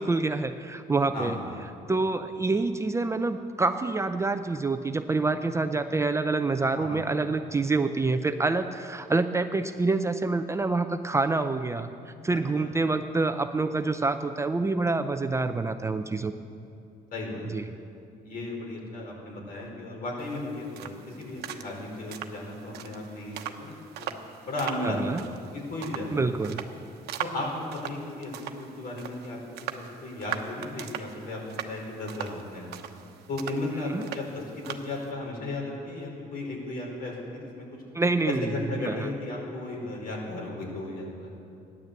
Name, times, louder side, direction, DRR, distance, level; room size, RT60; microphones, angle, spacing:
voice 1, 0.0-1.4 1.9-16.3 17.5-17.6 24.8-25.2 26.1-26.6 33.9-34.1 37.9-38.5 38.8-39.1, right 3 dB, 15° right, 8 dB, 0.6 m, -27 dB
voice 2, 1.1-1.4 6.7-7.0 12.3-12.7 17.1-17.7 18.2-24.1 24.4-26.3 27.2-29.4 29.7-32.8 33.3-37.5 38.3-41.3, left 2 dB, 60° left, -1 dB, 4.7 m, -35 dB
sound 1, 20.2-35.1, right 9 dB, 75° right, 1.0 m, -41 dB
15.0 x 11.0 x 8.2 m, 2.6 s
cardioid pair, 110°, 17 cm